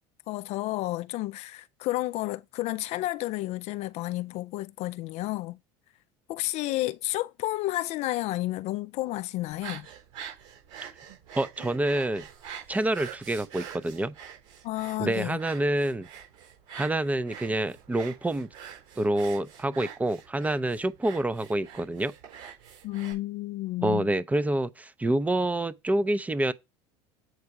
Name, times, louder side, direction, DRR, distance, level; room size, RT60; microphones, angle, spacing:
voice 1, 0.3-5.6 6.3-9.9 14.6-15.4 22.8-24.1, left 17 dB, 55° left, 0.4 m, -31 dB
sound 1, 9.5-23.1, right 8 dB, 70° right, 4.3 m, -45 dB
voice 2, 11.4-12.3 12.7-14.1 15.0-16.1 16.7-18.5 19.0-22.1 23.8-26.5, right 1 dB, 10° right, 0.6 m, -27 dB
8.0 x 4.3 x 4.8 m
supercardioid pair, 100°, 14 cm